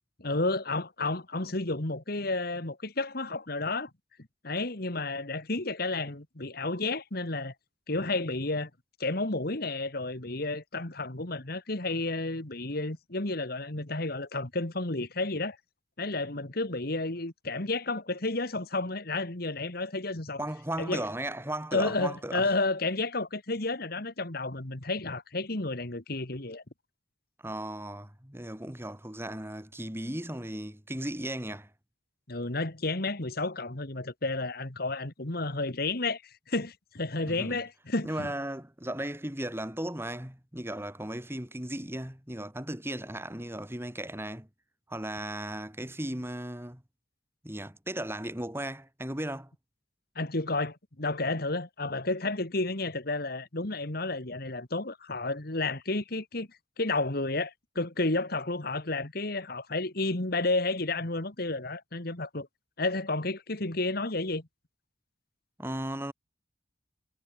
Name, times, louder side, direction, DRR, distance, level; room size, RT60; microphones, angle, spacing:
voice 1, 0.2-3.9 4.4-7.5 7.9-8.7 9.0-15.6 16.0-20.4 20.8-21.0 21.7-26.6 32.3-36.2 36.5-38.3 50.2-56.5 56.8-62.5 62.8-64.4, left 2 dB, 55° left, 2.1 m, -31 dB
voice 2, 20.4-22.5 27.4-31.7 37.3-37.6 38.0-44.5 44.9-46.8 47.4-49.5 65.6-66.1, right 1 dB, 10° right, 4.1 m, -36 dB
head